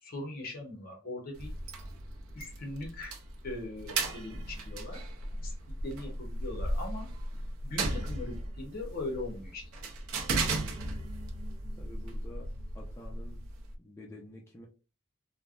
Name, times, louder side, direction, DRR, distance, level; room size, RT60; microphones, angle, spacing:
voice 1, 0.0-1.5 2.3-3.2 3.4-5.0 5.3-7.1 7.6-9.7, left 2 dB, 45° left, 0.8 m, -40 dB
sound 1, 1.3-13.7, right 2 dB, 85° right, 0.5 m, -36 dB
voice 2, 11.8-13.4 13.8-14.7, left 1 dB, 10° left, 0.4 m, -49 dB
3.2 x 2.0 x 2.3 m
head